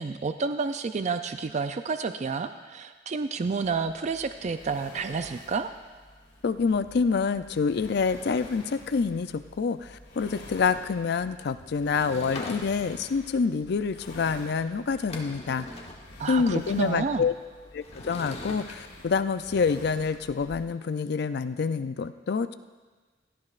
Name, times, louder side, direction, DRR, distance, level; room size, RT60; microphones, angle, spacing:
voice 1, 0.0-5.7 16.2-17.3, right 4 dB, 40° right, 9 dB, 0.4 m, -30 dB
sound 1, 3.6-20.6, left 1 dB, 85° left, 2.7 m, -48 dB
voice 2, 6.4-15.7 16.3-17.3 17.7-22.5, left 5 dB, 60° left, 12 dB, 0.4 m, -27 dB
Sliding door / Wood, 11.8-13.1 14.6-14.7 14.9-16.0 17.8-18.7, left 2 dB, 35° left, 1.2 m, -41 dB
17.0 x 12.5 x 2.5 m, 1.4 s
head